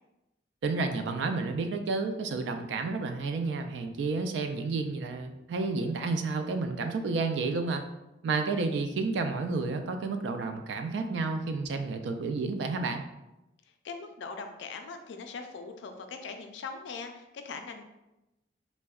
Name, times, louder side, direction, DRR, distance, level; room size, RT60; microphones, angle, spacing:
voice 1, 0.6-7.8 8.2-13.0, right 3 dB, 75° right, 6 dB, 0.3 m, -31 dB
voice 2, 13.7-17.8, left 4 dB, 80° left, 6 dB, 0.3 m, -41 dB
3.5 x 2.1 x 2.3 m, 0.94 s
head